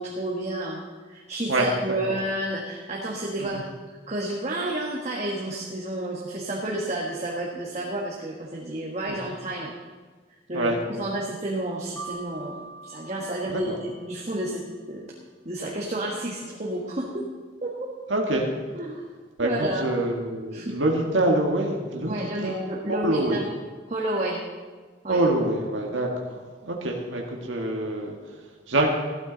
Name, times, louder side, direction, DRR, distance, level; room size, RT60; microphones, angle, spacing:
voice 1, 0.0-3.7 4.1-9.7 10.5-14.6 14.9-15.1 15.4-17.3 17.6-17.9 18.7-19.0 19.4-19.9 20.5-20.7 22.1-23.5 23.9-24.4 25.0-25.2, right 1 dB, 35° right, -3 dB, 1.5 m, -30 dB
Keyboard (musical), 12.0-14.5, right 4 dB, 10° left, 3.2 m, -43 dB
voice 2, 18.1-18.5 19.4-23.4 25.1-28.9, right 1 dB, 90° right, 0 dB, 1.7 m, -26 dB
15.5 x 12.5 x 4.0 m, 1.4 s
head